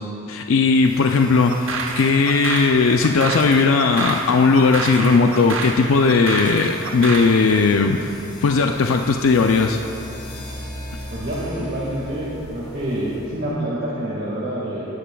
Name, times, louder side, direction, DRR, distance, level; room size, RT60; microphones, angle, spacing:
voice 1, 0.3-1.7 2.0-8.1 8.4-9.8, left 4 dB, 80° left, 4 dB, 0.4 m, -17 dB
sound 1, 0.7-13.5, left 1 dB, 30° left, 2.1 m, -39 dB
sound 2, 1.5-7.4, right 4 dB, 70° right, 0.9 m, -29 dB
voice 2, 11.1-14.9, right 1 dB, 50° right, -8 dB, 1.8 m, -27 dB
18.0 x 10.0 x 2.3 m, 2.8 s
head